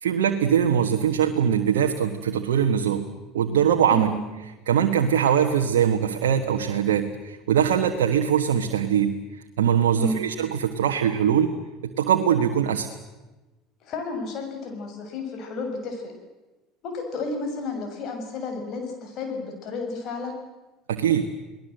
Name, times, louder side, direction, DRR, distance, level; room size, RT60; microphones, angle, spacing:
voice 1, 0.0-4.1 4.7-9.2 9.6-11.5 12.0-12.9 20.9-21.2, right 8 dB, 85° right, 4 dB, 1.4 m, -22 dB
voice 2, 13.8-16.1 16.8-20.4, left 2 dB, 55° left, 4 dB, 6.8 m, -31 dB
29.5 x 20.0 x 7.9 m, 1.1 s
hypercardioid pair, 80°, 0 cm